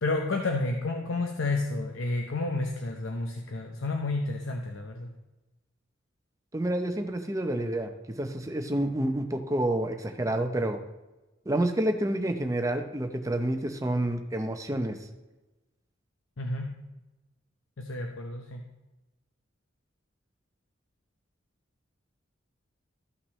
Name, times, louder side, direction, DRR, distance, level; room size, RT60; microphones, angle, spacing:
voice 1, 0.0-5.1 16.4-16.8 17.8-18.7, left 2 dB, 85° left, 3 dB, 0.7 m, -31 dB
voice 2, 6.5-7.9 8.2-10.8 11.5-15.0, right 1 dB, 15° right, 5 dB, 0.6 m, -28 dB
13.5 x 5.8 x 3.2 m, 1.1 s
head